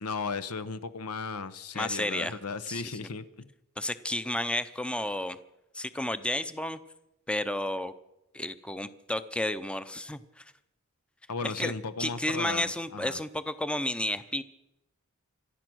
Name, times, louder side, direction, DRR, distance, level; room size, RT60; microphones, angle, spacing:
voice 1, 0.0-3.5 11.3-13.2, left 4 dB, 90° left, 0.9 m, -36 dB
voice 2, 1.7-2.3 2.7-3.1 3.8-5.4 5.7-6.8 7.3-7.9 8.3-10.4 11.4-11.7 12.0-14.4, left 1 dB, 5° left, 0.6 m, -32 dB
26.0 x 9.0 x 6.3 m
head